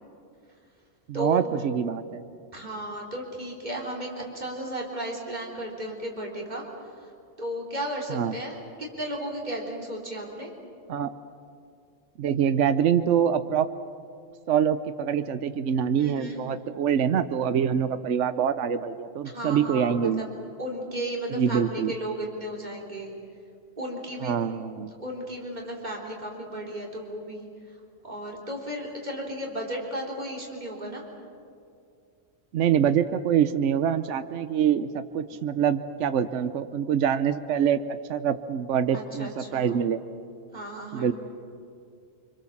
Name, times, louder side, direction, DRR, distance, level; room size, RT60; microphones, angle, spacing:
voice 1, 1.1-2.2 8.1-8.3 10.9-11.1 12.2-13.7 14.5-20.3 21.3-21.9 24.2-24.9 32.5-40.0 40.9-41.1, right 8 dB, 70° right, 11 dB, 1.1 m, -25 dB
voice 2, 2.5-7.1 7.4-10.5 16.0-16.4 19.3-20.2 20.6-23.1 23.8-24.4 25.0-27.5 28.0-31.0 38.9-39.8 40.5-41.1, right 1 dB, 35° right, -2 dB, 3.8 m, -34 dB
26.5 x 25.5 x 7.2 m, 2.4 s
omnidirectional pair, 1.3 m